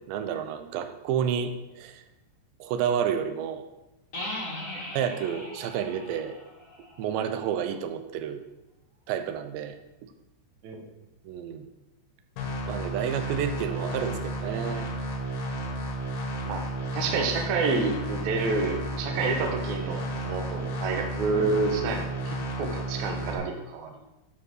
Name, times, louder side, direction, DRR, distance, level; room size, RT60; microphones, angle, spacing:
voice 1, 0.1-2.0 2.6-3.6 4.9-6.4 7.0-8.4 9.1-9.8 11.3-11.7 12.7-14.9, right 8 dB, 90° right, 8 dB, 3.0 m, -30 dB
sound 1, 4.1-7.8, left 1 dB, 40° left, 1.1 m, -39 dB
sound 2, 12.4-23.4, right 1 dB, 80° left, 4.1 m, -32 dB
voice 2, 16.9-23.9, right 3 dB, 70° right, 2 dB, 1.9 m, -29 dB
10.5 x 4.7 x 6.4 m, 0.98 s
omnidirectional pair, 4.9 m